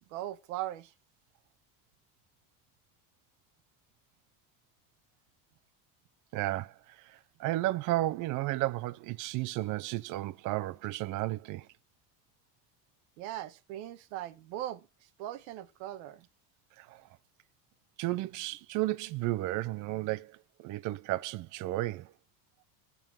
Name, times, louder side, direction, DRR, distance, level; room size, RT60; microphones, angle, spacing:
voice 1, 0.1-0.9 13.2-16.3, right 13 dB, 90° right, 1.3 m, -39 dB
voice 2, 6.3-11.7 16.8-17.0 18.0-22.1, right 17 dB, 45° right, 0.6 m, -33 dB
12.0 x 7.1 x 7.4 m
cardioid pair, 150°, 42 cm